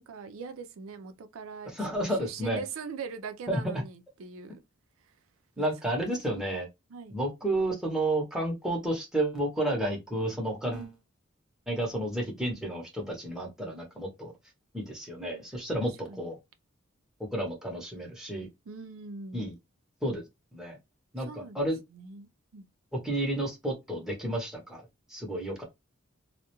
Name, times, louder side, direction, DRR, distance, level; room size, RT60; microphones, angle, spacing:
voice 1, 0.0-1.7 2.0-4.6 5.6-6.2 6.9-7.2 10.6-10.9 15.5-16.3 18.7-19.5 21.2-21.7 21.9-22.7, right 5 dB, 80° right, 0.4 m, -42 dB
voice 2, 1.7-2.6 3.5-3.6 5.6-6.7 7.1-10.9 11.7-14.3 14.7-16.4 17.2-18.5 19.3-19.5 20.0-20.2 20.5-20.8 21.1-21.8 22.9-24.8 25.1-25.6, right 1 dB, 5° right, 0.7 m, -31 dB
2.3 x 2.1 x 2.9 m
head